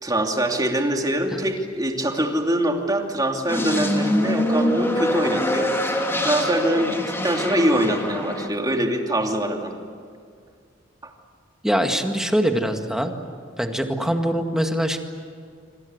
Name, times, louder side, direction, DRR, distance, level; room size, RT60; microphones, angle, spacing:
voice 1, 0.0-5.7 6.2-9.8 11.0-11.1, right 1 dB, 20° right, 2 dB, 2.8 m, -23 dB
sound 1, 3.5-8.5, left 1 dB, 15° left, 2.9 m, -24 dB
voice 2, 11.6-13.1 13.6-15.0, equal, 5° right, 4 dB, 2.0 m, -23 dB
26.5 x 25.5 x 8.1 m, 2.2 s
head